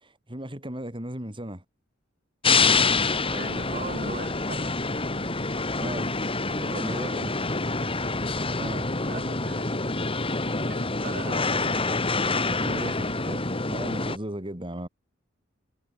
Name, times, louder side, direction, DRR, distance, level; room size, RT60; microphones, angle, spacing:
voice 1, 0.0-1.6 2.5-2.9 5.8-6.1 6.6-7.6 8.6-8.9 11.5-14.9, right 1 dB, 25° right, 5.7 m, -37 dB
sound 1, 2.4-14.2, left 3 dB, 30° left, 3.2 m, -26 dB
voice 2, 3.3-4.7 6.5-7.1 9.0-9.7 10.7-11.7 12.7-12.9, right 3 dB, 45° right, 7.7 m, -39 dB
head